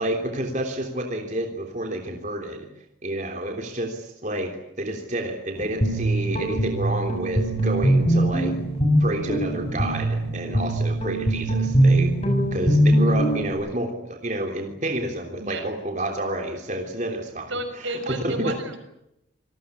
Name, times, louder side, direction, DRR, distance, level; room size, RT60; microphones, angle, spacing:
voice 1, 0.0-2.7 3.0-8.6 9.0-12.1 12.5-17.5 17.8-18.5, right 1 dB, 40° right, 3 dB, 3.4 m, -29 dB
Guitar, 5.5-13.5, right 1 dB, 30° left, 7.8 m, -22 dB
voice 2, 17.5-18.8, right 1 dB, 75° right, 8 dB, 6.4 m, -32 dB
28.5 x 19.5 x 8.5 m, 0.84 s
head